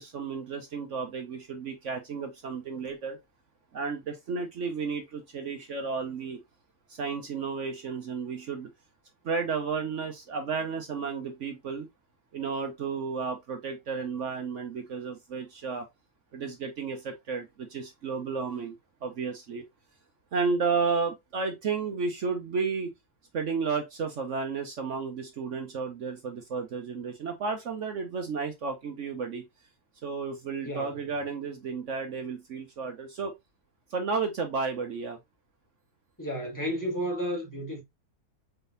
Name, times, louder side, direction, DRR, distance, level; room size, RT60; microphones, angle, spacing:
voice 1, 0.0-3.2 3.7-6.4 6.9-8.7 9.2-11.9 12.3-15.9 16.3-19.6 20.3-22.9 23.3-29.4 30.0-33.3 33.9-35.2, right 5 dB, 55° right, 1.0 m, -32 dB
voice 2, 30.6-31.1 36.2-37.8, equal, 10° left, 1.9 m, -32 dB
4.5 x 3.7 x 2.6 m
omnidirectional pair, 1.7 m